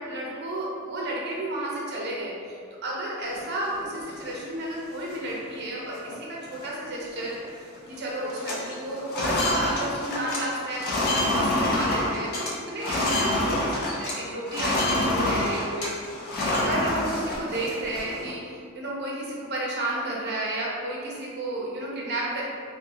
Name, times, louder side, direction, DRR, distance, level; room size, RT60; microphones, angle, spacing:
voice 1, 0.0-16.0 16.5-22.5, right 1 dB, 55° right, -4 dB, 0.7 m, -32 dB
sound 1, 3.2-4.3 4.8-4.9 5.1-5.5 5.9-6.1 6.4-7.5 7.7-14.2 14.5-18.3, left 1 dB, 50° left, 0.6 m, -27 dB
3.7 x 2.2 x 2.7 m, 2.2 s
head